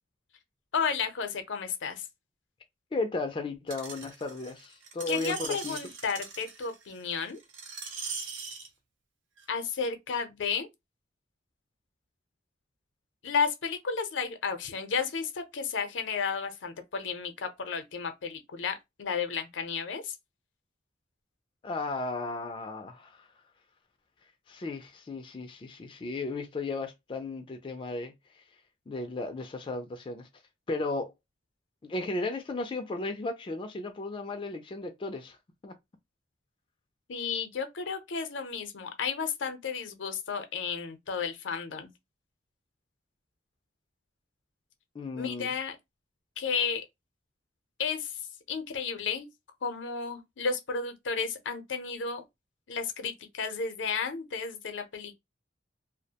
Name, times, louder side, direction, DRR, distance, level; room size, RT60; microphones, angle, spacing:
voice 1, 0.7-2.1 5.1-7.4 9.5-10.7 13.2-20.2 37.1-41.9 45.2-45.8 46.4-46.8 47.8-48.2 48.5-49.3 49.6-52.2 52.7-55.1, left 5 dB, 80° left, 0.6 m, -32 dB
voice 2, 2.9-5.8 21.6-23.3 24.5-28.1 28.9-30.3 30.7-31.1 31.8-35.4 35.6-35.7 44.9-45.5, left 2 dB, 25° left, 0.3 m, -35 dB
Screech, 3.7-8.7 9.4-9.5, right 5 dB, 90° right, 0.6 m, -40 dB
2.3 x 2.1 x 2.7 m
head